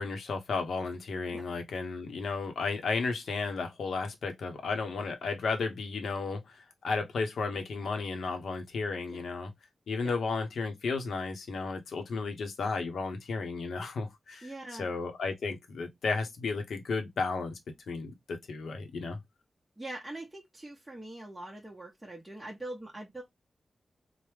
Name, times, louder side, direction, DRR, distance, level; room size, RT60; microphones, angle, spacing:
voice 1, 0.0-9.5 9.9-17.6 17.9-19.2, left 4 dB, 85° left, 0.7 m, -33 dB
voice 2, 14.4-14.9 19.8-23.2, right 1 dB, 10° right, 0.8 m, -43 dB
3.3 x 2.0 x 3.0 m
wide cardioid pair, 110°, 0 cm